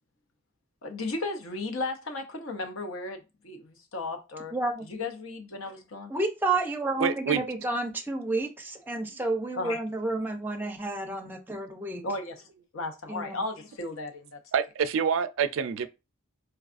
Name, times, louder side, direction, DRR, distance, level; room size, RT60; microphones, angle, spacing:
voice 1, 0.8-4.5 4.9-6.1 9.6-9.8 12.0-12.4 12.7-14.4, left 2 dB, 70° left, 0.7 m, -35 dB
voice 2, 4.5-4.9 6.1-12.0 13.1-13.4, right 2 dB, 10° right, 0.5 m, -30 dB
voice 3, 7.0-7.4 14.5-15.9, right 7 dB, 65° right, 0.3 m, -26 dB
4.5 x 2.3 x 2.5 m
head